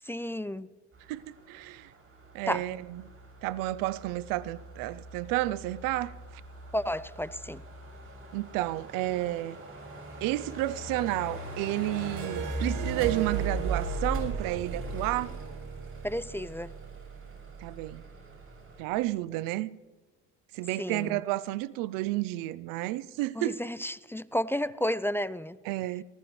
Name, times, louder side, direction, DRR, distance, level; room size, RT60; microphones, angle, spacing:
voice 1, 0.1-0.7 2.5-2.6 6.7-7.6 16.0-16.7 20.8-21.2 23.4-25.6, left 1 dB, 5° left, 0.4 m, -32 dB
sound 1, 0.9-18.8, right 3 dB, 45° right, 6.6 m, -39 dB
voice 2, 1.1-1.9 2.3-3.0 3.4-6.1 8.3-9.6 10.2-15.3 17.6-18.0 18.8-19.7 20.5-23.6 25.6-26.0, right 17 dB, 90° right, 0.6 m, -31 dB
Harp, 12.1-17.3, right 9 dB, 70° right, 1.5 m, -41 dB
19.0 x 19.0 x 3.2 m
supercardioid pair, 80°, 32 cm